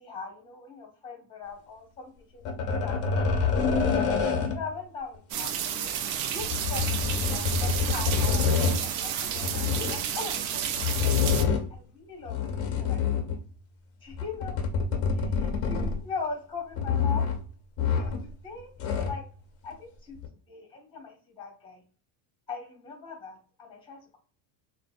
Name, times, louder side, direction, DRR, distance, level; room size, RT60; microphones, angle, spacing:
voice 1, 0.0-3.5 3.8-5.5 6.3-11.2 11.7-13.4 14.0-14.6 15.1-17.2 17.9-18.7 19.0-19.2 19.6-20.2 20.5-21.8 22.5-24.2, left 4 dB, 10° left, 1 dB, 0.9 m, -41 dB
sound 1, 2.5-4.7 6.4-8.8 9.3-10.0 10.7-11.8 12.3-13.5 14.1-16.2 16.7-17.4 17.8-18.3 18.6-19.3 20.2-20.3, left 6 dB, 30° left, 0.5 m, -27 dB
sound 2, 5.3-11.4, right 9 dB, 55° right, 0.5 m, -31 dB
3.9 x 2.2 x 2.5 m, 0.41 s
cardioid pair, 155°, 48 cm